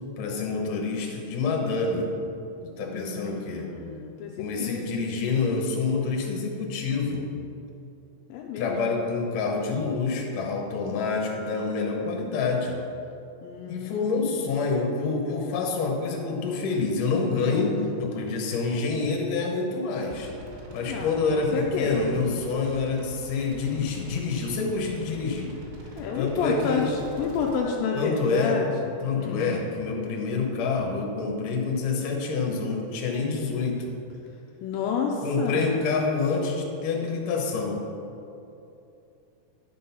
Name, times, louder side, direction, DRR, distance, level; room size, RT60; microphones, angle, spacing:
voice 1, 0.2-2.1 2.6-3.7 4.4-7.2 8.6-12.8 13.7-20.3 20.7-25.5 26.2-26.9 28.0-28.6 29.0-33.9 35.2-37.8, left 4 dB, 70° left, 0 dB, 2.2 m, -27 dB
voice 2, 2.8-4.8 8.3-8.8 13.4-14.4 20.9-22.2 26.0-29.4 34.6-35.7, left 5 dB, 85° left, 0 dB, 2.1 m, -30 dB
sound 1, 20.1-27.6, right 1 dB, 90° right, 3.1 m, -44 dB
11.0 x 3.9 x 5.5 m, 2.7 s
omnidirectional pair, 4.6 m